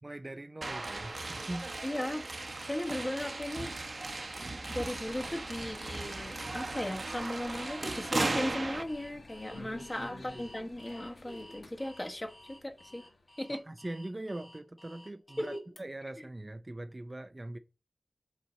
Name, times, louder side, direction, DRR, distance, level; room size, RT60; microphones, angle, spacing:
voice 1, 0.0-1.7 9.5-10.4 13.5-17.6, right 1 dB, 30° right, 0.4 m, -42 dB
sound 1, 0.6-8.8, right 2 dB, 50° right, 0.9 m, -37 dB
voice 2, 1.8-2.3 2.6-3.7 4.7-13.0 13.4-13.6 15.4-15.6, left 1 dB, 25° left, 1.2 m, -37 dB
sound 2, 5.0-13.6, left 2 dB, 65° left, 1.4 m, -51 dB
Alarm, 8.9-15.8, left 1 dB, 45° left, 2.2 m, -54 dB
5.5 x 4.3 x 6.2 m
wide cardioid pair, 75°, 0 cm